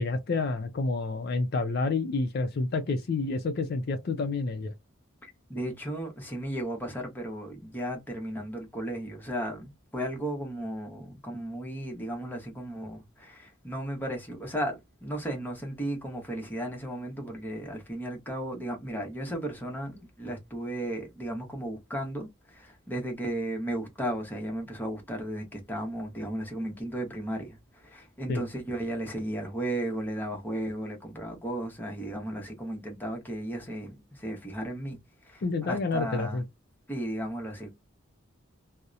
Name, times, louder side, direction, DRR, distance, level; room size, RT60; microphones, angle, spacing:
voice 1, 0.0-4.7 28.3-28.4 35.4-36.4, left 3 dB, 50° left, 0.4 m, -29 dB
voice 2, 5.2-35.0 35.2-36.4 36.9-37.7, right 1 dB, 10° left, 0.8 m, -35 dB
2.7 x 2.0 x 2.3 m
head